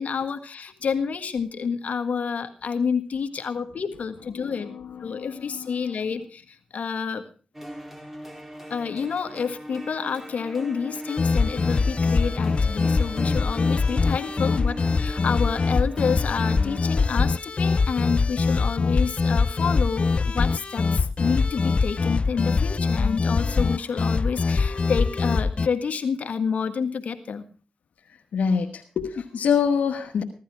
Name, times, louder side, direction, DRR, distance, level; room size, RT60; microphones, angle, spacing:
voice 1, 0.0-4.7 5.0-7.3 8.7-27.4, left 6 dB, 75° left, 9 dB, 1.7 m, -29 dB
voice 2, 4.4-6.0 28.3-30.2, left 6 dB, 90° left, 3 dB, 1.3 m, -26 dB
sound 1, 7.5-17.0, equal, 15° right, 4.5 m, -39 dB
sound 2, 11.1-25.7, left 4 dB, 50° left, 0.6 m, -23 dB
16.5 x 12.5 x 4.7 m, 0.38 s
cardioid pair, 50°, 3 cm